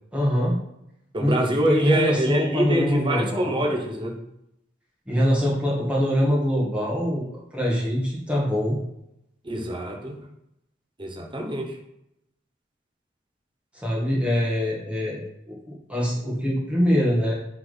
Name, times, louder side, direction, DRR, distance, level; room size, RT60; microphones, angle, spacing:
voice 1, 0.1-0.6 1.2-3.8 5.1-7.3 7.5-8.8 13.7-17.3, equal, 5° right, -5 dB, 1.7 m, -24 dB
voice 2, 1.1-4.2 9.4-10.2 11.0-11.7, right 1 dB, 25° right, 1 dB, 1.1 m, -25 dB
8.4 x 3.7 x 4.0 m, 0.81 s
head